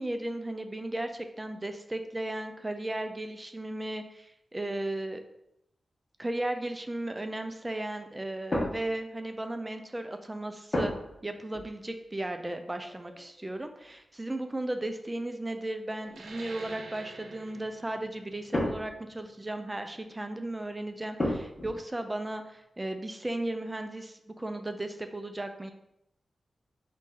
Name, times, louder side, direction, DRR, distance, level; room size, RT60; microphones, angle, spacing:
voice 1, 0.0-5.2 6.2-10.9 11.2-25.7, right 1 dB, 20° right, 7 dB, 0.4 m, -35 dB
sound 1, 8.5-9.7 10.7-11.3 11.5-11.8 12.7-13.9 14.9-15.0 15.4-16.2 18.0-19.2 21.2-21.7, left 1 dB, 35° left, 1.2 m, -34 dB
sound 2, 16.1-21.2, right 3 dB, 90° right, 0.5 m, -49 dB
4.0 x 3.1 x 3.7 m, 0.82 s
cardioid pair, 75°, 0 cm